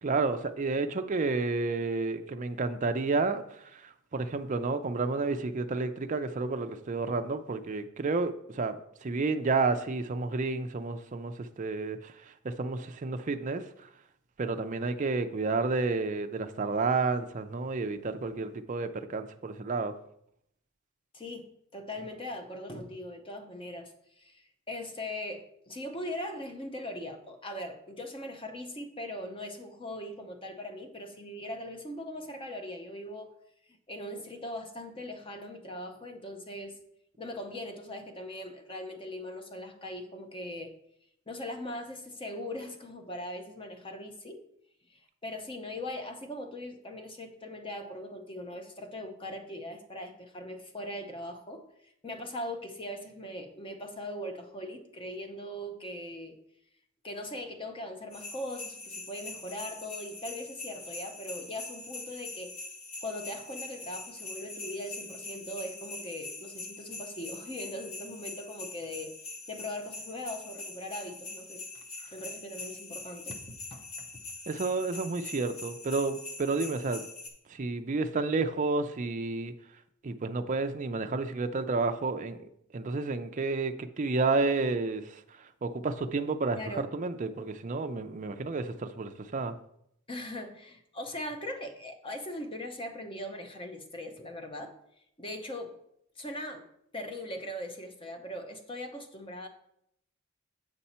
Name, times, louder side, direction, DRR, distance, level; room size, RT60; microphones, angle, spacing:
voice 1, 0.0-8.8 9.0-12.1 12.4-13.6 14.4-19.9 74.5-77.0 77.5-79.5 80.0-82.4 82.7-89.6, right 3 dB, 35° right, 7 dB, 0.4 m, -31 dB
voice 2, 21.1-33.3 33.7-36.8 37.2-40.7 41.3-44.4 44.9-56.4 57.0-62.5 63.0-73.4 73.7-74.1 86.5-86.9 90.1-94.8 95.2-95.8 96.2-96.7 96.9-99.5, left 1 dB, 25° left, 5 dB, 0.8 m, -40 dB
sound 1, 58.1-77.3, left 3 dB, 70° left, 1.4 m, -43 dB
8.1 x 5.5 x 4.3 m, 0.75 s
head